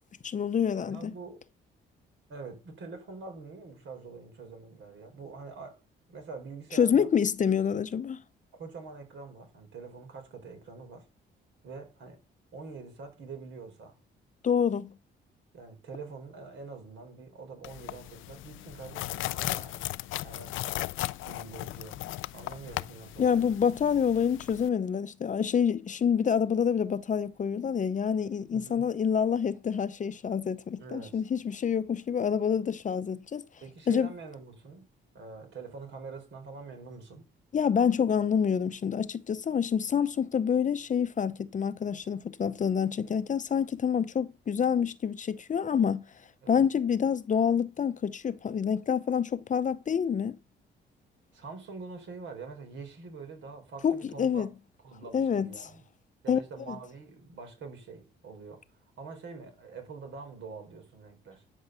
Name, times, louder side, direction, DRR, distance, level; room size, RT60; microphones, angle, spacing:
voice 1, 0.2-1.1 6.7-8.2 14.4-14.9 23.2-33.4 33.9-34.1 37.5-46.0 46.5-50.4 53.8-54.5 55.1-55.5 56.3-56.4 56.7-56.8, left 7 dB, 40° left, 0.7 m, -27 dB
voice 2, 0.8-1.4 2.3-5.8 6.1-7.1 8.5-11.0 11.6-12.2 12.5-14.0 15.5-19.8 20.2-20.6 21.2-23.5 28.5-28.9 30.8-31.2 33.6-34.8 35.1-37.2 46.4-46.7 51.3-54.5 54.8-55.8 56.2-58.6 59.0-61.4, right 4 dB, 70° right, 4.5 m, -45 dB
sound 1, 17.6-24.7, left 17 dB, 85° left, 0.4 m, -37 dB
11.5 x 5.3 x 6.8 m
cardioid pair, 90°, 20 cm